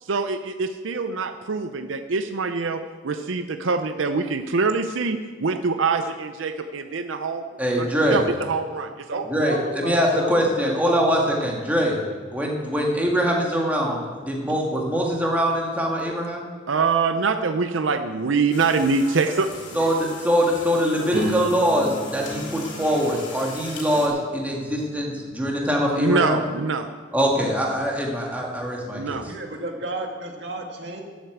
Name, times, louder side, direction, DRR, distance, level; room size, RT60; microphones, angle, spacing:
voice 1, 0.0-7.4 7.8-9.3 16.7-19.9 26.0-26.9 28.9-29.2, right 4 dB, 85° right, 8 dB, 0.6 m, -24 dB
voice 2, 7.6-8.2 9.3-12.0 12.3-16.5 19.7-26.4 27.1-29.2, equal, 10° right, -2 dB, 2.0 m, -23 dB
voice 3, 9.1-11.0 29.2-31.0, right 1 dB, 60° right, 2 dB, 2.0 m, -32 dB
sound 1, 18.5-24.1, left 3 dB, 65° left, 3.1 m, -39 dB
sound 2, 21.1-27.0 27.5-27.9, left 1 dB, 40° right, 3.0 m, -36 dB
12.0 x 8.0 x 7.9 m, 1.5 s
head